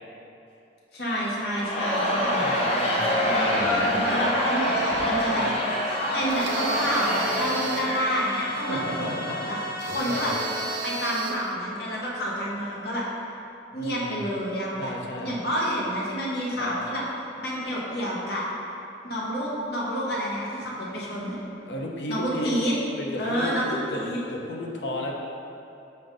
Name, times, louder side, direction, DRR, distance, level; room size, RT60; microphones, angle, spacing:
voice 1, 0.9-2.5 3.2-5.4 6.1-10.3 10.8-13.0 13.7-14.9 15.2-17.0 17.4-18.4 19.0-21.4 22.1-22.7 23.2-24.2, equal, 60° left, -5 dB, 1.2 m, -29 dB
Crowd, 1.5-8.8, equal, 35° left, 0.9 m, -26 dB
voice 2, 2.4-3.1 4.1-4.2 5.3-5.5 8.5-9.4 10.1-10.4 13.7-14.2 14.8-15.4 16.5-16.7 21.7-22.5 23.0-24.0 24.3-25.1, left 1 dB, 75° left, -1 dB, 0.8 m, -34 dB
sound 1, 2.8-11.2, left 1 dB, 40° right, 1.2 m, -38 dB
sound 2, 6.3-8.0 9.8-11.5, right 4 dB, 80° right, 0.5 m, -33 dB
5.6 x 3.9 x 5.3 m, 2.7 s
head